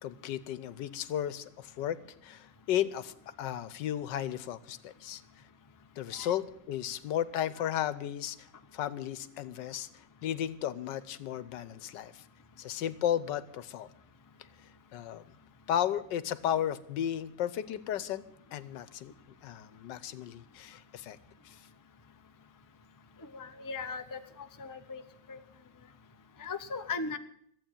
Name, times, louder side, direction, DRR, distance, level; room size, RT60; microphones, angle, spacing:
voice 1, 0.0-2.0 2.2-5.2 6.0-8.5 8.7-12.2 12.6-13.9 14.9-15.2 15.7-18.2 18.5-19.1 19.4-21.2 21.4-21.7, left 10 dB, 85° left, 15 dB, 1.4 m, -34 dB
voice 2, 23.3-24.2 24.6-25.0 25.3-25.4 26.4-27.2, left 4 dB, 20° left, 7 dB, 0.4 m, -37 dB
14.0 x 8.4 x 8.9 m, 0.69 s
omnidirectional pair, 1.9 m